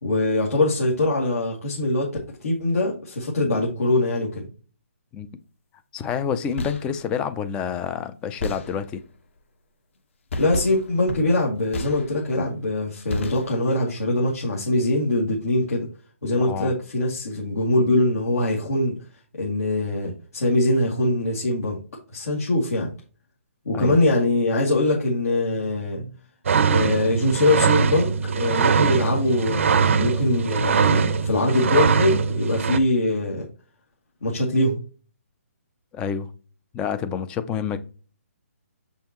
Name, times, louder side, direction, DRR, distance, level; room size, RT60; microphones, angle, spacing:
voice 1, 0.0-2.1 2.4-4.5 10.4-15.9 16.2-18.9 19.4-21.8 22.1-22.9 23.6-26.1 26.7-33.5 34.2-34.8, left 2 dB, 75° left, 2.4 m, -22 dB
voice 2, 5.9-9.0 16.4-16.7 23.7-24.0 35.9-36.3 36.7-37.8, left 7 dB, 10° left, 0.4 m, -28 dB
sound 1, 6.4-7.1 8.4-9.1 10.3-12.5 13.1-13.9, left 2 dB, 55° left, 1.4 m, -33 dB
sound 2, 26.5-32.8, right 6 dB, 60° right, 0.6 m, -21 dB
7.2 x 5.5 x 3.0 m
hypercardioid pair, 165°, 8 cm